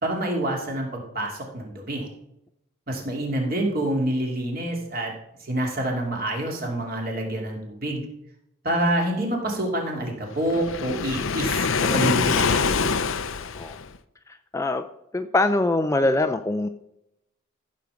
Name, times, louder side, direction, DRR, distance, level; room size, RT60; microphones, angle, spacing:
voice 1, 0.0-2.1 2.9-5.1 5.4-8.0 8.6-12.7, right 1 dB, 45° right, 0 dB, 2.8 m, -27 dB
Waves surf, 10.5-14.0, left 5 dB, 70° left, 0.6 m, -24 dB
voice 2, 14.3-14.9 15.1-16.7, left 2 dB, 15° left, 8 dB, 0.4 m, -23 dB
14.5 x 5.3 x 7.1 m, 0.81 s
head